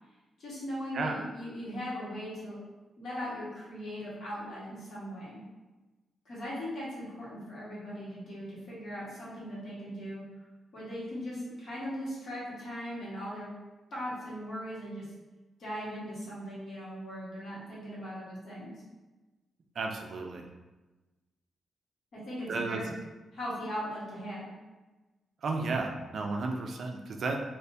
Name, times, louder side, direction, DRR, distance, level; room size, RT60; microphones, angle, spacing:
voice 1, 0.4-2.6 3.0-5.4 6.2-10.2 10.7-13.5 13.9-15.1 15.6-18.7 22.1-22.9 23.3-24.5, equal, 55° left, -8 dB, 1.3 m, -39 dB
voice 2, 19.8-20.4 22.5-22.8 25.4-27.4, right 3 dB, 55° right, 2 dB, 0.3 m, -33 dB
3.5 x 2.4 x 2.6 m, 1.2 s
wide cardioid pair, 150°, 0 cm